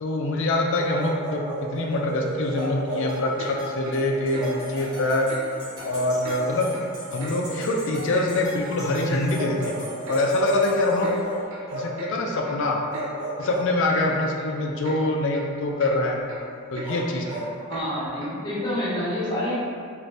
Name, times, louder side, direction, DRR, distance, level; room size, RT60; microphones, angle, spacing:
voice 1, 0.0-5.3 5.8-6.7 7.1-9.7 10.1-11.1 11.7-12.8 13.4-16.2 16.7-17.5, left 2 dB, 60° left, 0 dB, 0.4 m, -24 dB
sound 1, 0.7-11.4, right 1 dB, 85° right, 1.1 m, -38 dB
Bark, 1.0-1.7 2.5-3.2 4.3-4.7 6.4-6.5 9.3-10.3 10.9-12.0 12.9-14.2 16.8-17.6, right 1 dB, 20° right, 0.7 m, -34 dB
Clock, 3.4-3.5 3.8-4.0 4.3-4.5 4.8-4.9 5.3-5.4 5.8-5.9 6.2-6.4 6.7-6.9 7.2-7.3 7.7-8.3 8.6-8.7 9.1-9.2 9.6-9.7 10.1-10.2 10.5-10.7 11.0-11.2 11.5-11.7 12.0-12.1 12.4-12.6 12.9-13.1 13.4-13.5 13.9-14.0 14.4-14.5 14.8-15.0 15.3-15.5 15.8-16.0 16.2-16.4 16.7-16.9 17.2-17.4 17.7-17.9 18.2-18.3, right 2 dB, 65° right, 0.5 m, -39 dB
voice 2, 17.7-19.6, left 1 dB, 20° left, -9 dB, 0.9 m, -27 dB
2.6 x 2.5 x 3.2 m, 2.3 s
head